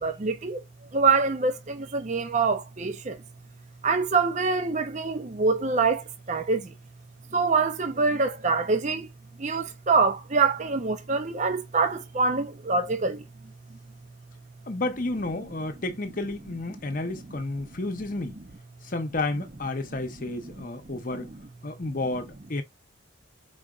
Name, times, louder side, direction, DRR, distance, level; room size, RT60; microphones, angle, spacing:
voice 1, 0.0-0.6 0.9-3.1 3.8-6.0 6.3-6.6 7.3-9.0 9.4-13.2, right 4 dB, 35° right, 0.6 m, -25 dB
voice 2, 14.7-18.4 18.9-21.3 21.6-22.6, left 2 dB, 40° left, 0.8 m, -31 dB
5.0 x 3.9 x 2.4 m
head